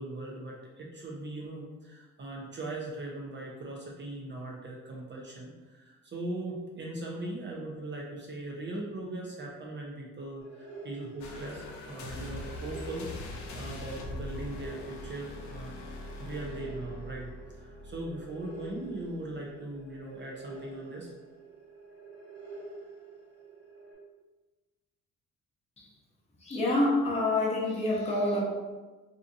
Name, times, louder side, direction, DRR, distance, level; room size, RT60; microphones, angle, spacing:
voice 1, 0.0-15.8 16.2-17.3 17.6-21.1, right 2 dB, 40° right, -2 dB, 0.5 m, -40 dB
sound 1, 10.4-23.9, right 3 dB, 5° left, 1.3 m, -48 dB
sound 2, 11.2-19.4 19.8-20.0, left 2 dB, 70° left, 0.5 m, -42 dB
voice 2, 26.4-28.4, left 2 dB, 20° left, -5 dB, 0.8 m, -27 dB
2.7 x 2.4 x 2.5 m, 1.2 s
cardioid pair, 90°, 30 cm